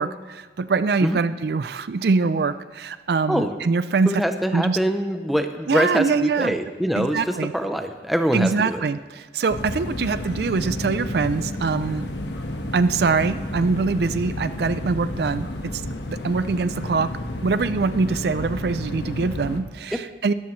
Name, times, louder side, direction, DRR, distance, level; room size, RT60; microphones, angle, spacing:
voice 1, 0.0-4.2 4.5-4.8 5.7-6.5 7.0-7.5 8.3-12.1 12.7-15.8 16.1-17.1 17.4-20.3, right 4 dB, 60° right, 13 dB, 0.4 m, -23 dB
voice 2, 3.3-3.6 4.1-8.8 19.9-20.0, equal, ahead, 6 dB, 0.6 m, -24 dB
sound 1, 9.5-19.6, left 1 dB, 85° left, 1.3 m, -31 dB
19.5 x 13.0 x 3.2 m, 1.4 s
head